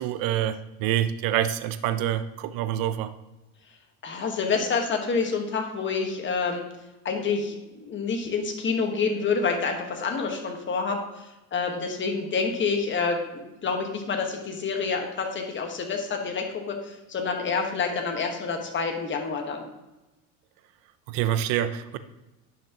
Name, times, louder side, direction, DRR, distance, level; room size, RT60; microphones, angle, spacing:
voice 1, 0.0-3.1 21.1-22.0, right 11 dB, 55° right, 12 dB, 0.7 m, -26 dB
voice 2, 4.0-6.6 7.0-19.7, left 5 dB, 30° left, 3 dB, 1.4 m, -28 dB
10.0 x 6.0 x 2.9 m, 1.0 s
supercardioid pair, 115°, 41 cm